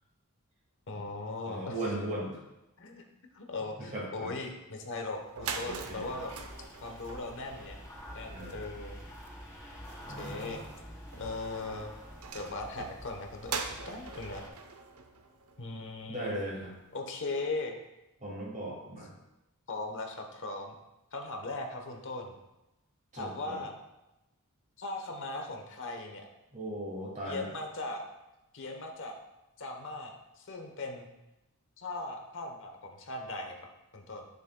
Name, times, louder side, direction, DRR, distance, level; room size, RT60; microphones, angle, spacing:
voice 1, 0.9-1.8 2.8-3.0 3.3-6.3 6.8-7.8 8.1-9.0 10.2-10.6 11.2-11.9 12.3-14.4 15.6-16.4 16.9-17.8 19.7-20.8 21.1-22.4 23.2-23.7 24.8-26.3 27.3-28.0 28.5-29.2 29.6-31.1 31.8-33.6 33.9-34.2, left 2 dB, 60° left, 3 dB, 1.0 m, -39 dB
voice 2, 1.4-2.4 3.8-4.3 5.6-6.1 8.3-8.6 10.1-10.7 16.1-16.7 18.2-19.1 23.1-23.6 26.5-27.5, right 1 dB, 35° right, -5 dB, 2.1 m, -38 dB
sound 1, 5.0-5.1 5.2-16.0, right 5 dB, 75° right, 0.7 m, -43 dB
sound 2, 5.6-14.5, equal, 15° left, 1.9 m, -48 dB
10.0 x 6.7 x 2.2 m, 0.96 s
head